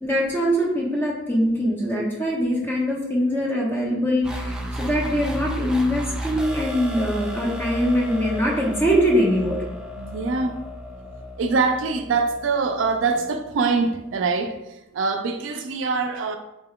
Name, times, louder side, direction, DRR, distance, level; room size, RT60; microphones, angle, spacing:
voice 1, 0.0-9.6, equal, 10° left, 0.8 m, -23 dB
sound 1, 4.2-13.8, equal, 5° right, 0.3 m, -33 dB
voice 2, 10.0-10.6 11.4-16.4, right 4 dB, 75° right, 0.4 m, -24 dB
4.4 x 2.2 x 3.6 m
head